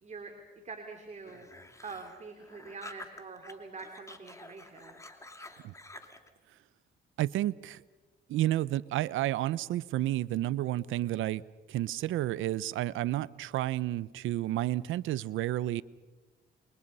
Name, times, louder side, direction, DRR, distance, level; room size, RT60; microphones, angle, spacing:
voice 1, 0.0-1.5 1.8-5.0, right 4 dB, 35° right, 4 dB, 2.9 m, -45 dB
sound 1, 1.2-3.5 3.8-6.3, left 2 dB, 15° left, 2.6 m, -49 dB
voice 2, 7.2-7.8 8.3-11.4 11.7-15.8, right 14 dB, 85° right, 19 dB, 0.7 m, -31 dB
29.0 x 23.5 x 5.5 m, 1.2 s
cardioid pair, 90°, 20 cm